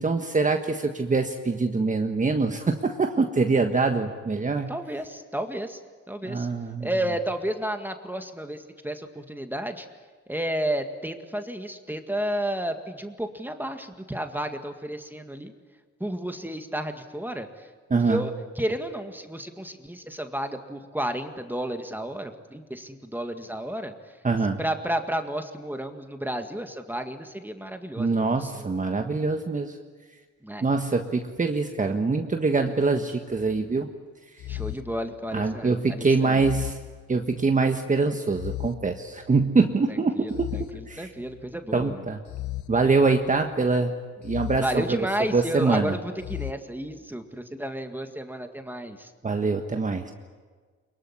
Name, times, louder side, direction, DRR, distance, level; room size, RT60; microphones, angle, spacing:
voice 1, 0.0-4.7 6.2-6.9 17.9-18.2 24.2-24.6 28.0-29.7 30.6-33.9 35.3-36.8 37.1-40.5 40.9-41.1 41.7-42.2 42.7-43.9 44.2-45.0 45.3-45.9 49.2-50.1, right 4 dB, 25° right, 5 dB, 1.5 m, -24 dB
voice 2, 4.7-5.8 6.1-6.5 6.8-9.9 10.3-15.5 16.0-17.7 17.9-23.9 24.6-28.7 30.4-30.7 34.5-36.4 39.9-42.0 44.6-49.1, right 1 dB, 5° right, 6 dB, 1.9 m, -32 dB
sound 1, 33.3-33.7 34.4-35.7 36.4-37.6 38.3-39.6 40.3-41.6 42.3-43.6 44.2-45.5 46.2-46.5, left 16 dB, 80° left, 1.2 m, -37 dB
22.5 x 22.5 x 9.9 m, 1.4 s
cardioid pair, 90°, 30 cm